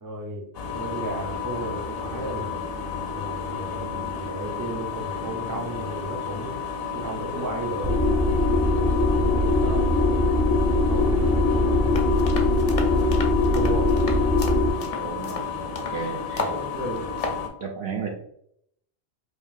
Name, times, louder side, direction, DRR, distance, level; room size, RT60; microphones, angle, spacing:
voice 1, 0.0-0.5 0.7-2.6 3.1-6.6 6.9-7.9 8.8-10.0 10.9-12.2 13.5-13.9 16.4-17.1, right 1 dB, 20° right, 0 dB, 0.5 m, -34 dB
sound 1, 0.5-17.5, left 6 dB, 65° left, 0.8 m, -32 dB
sound 2, 7.8-14.7, left 2 dB, 85° right, 2.0 m, -21 dB
sound 3, 11.9-16.0 16.4-16.6 17.0-17.4, left 3 dB, 45° left, 0.5 m, -34 dB
voice 2, 15.0-16.4 17.6-18.1, right 6 dB, 65° right, 2 dB, 0.9 m, -34 dB
5.0 x 2.7 x 2.4 m, 0.70 s
omnidirectional pair, 1.2 m